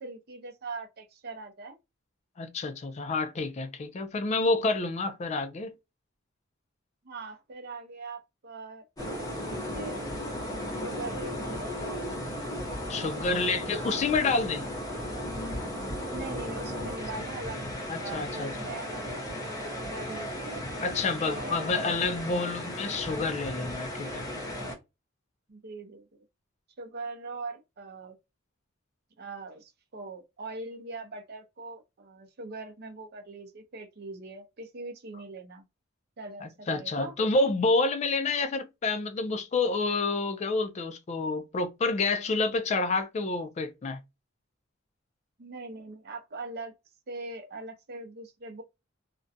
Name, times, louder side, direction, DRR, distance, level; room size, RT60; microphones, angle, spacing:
voice 1, 0.0-1.8 7.0-10.0 10.7-11.7 12.9-14.0 16.1-17.6 18.0-20.6 21.2-22.0 25.5-26.2 26.8-28.2 29.2-35.6 36.2-37.1 45.4-46.7 47.1-48.6, right 3 dB, 55° right, 0.6 m, -42 dB
voice 2, 2.4-5.8 12.9-14.7 17.9-18.5 20.8-24.2 36.4-44.0, left 3 dB, 35° left, 0.3 m, -28 dB
sound 1, 9.0-24.8, equal, 20° left, 0.9 m, -35 dB
2.4 x 2.1 x 2.6 m
head